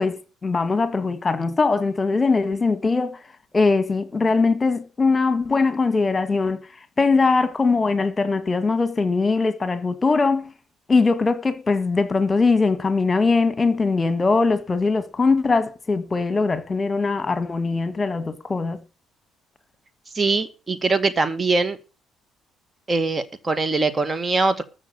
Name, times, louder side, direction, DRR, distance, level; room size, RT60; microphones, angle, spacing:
voice 1, 0.0-3.2 3.5-6.6 7.0-10.5 10.9-18.8, left 4 dB, 30° left, 1.9 m, -21 dB
voice 2, 20.1-21.8 22.9-24.6, right 3 dB, 30° right, 2.0 m, -22 dB
14.0 x 6.2 x 8.2 m
hypercardioid pair, 55°, 0 cm